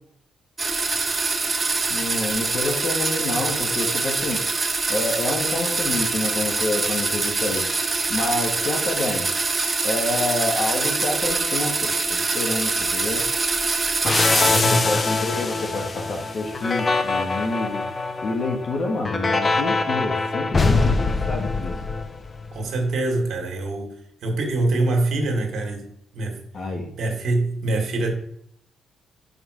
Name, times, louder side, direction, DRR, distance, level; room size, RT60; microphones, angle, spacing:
sound 1, 0.6-14.6, right 3 dB, 25° right, 0.8 m, -24 dB
voice 1, 1.9-4.4 4.9-7.6 8.1-9.3 9.8-13.2 14.3-17.8 18.2-21.7 26.5-26.9, left 2 dB, 50° left, 3 dB, 1.6 m, -28 dB
sound 2, 14.0-22.5, left 3 dB, 30° left, 0.6 m, -23 dB
voice 2, 14.4-15.0 22.5-23.9 24.2-25.9 26.1-26.4 27.0-28.1, right 2 dB, 65° right, 2 dB, 1.6 m, -24 dB
5.4 x 4.8 x 4.9 m, 0.71 s
cardioid pair, 90°, 0 cm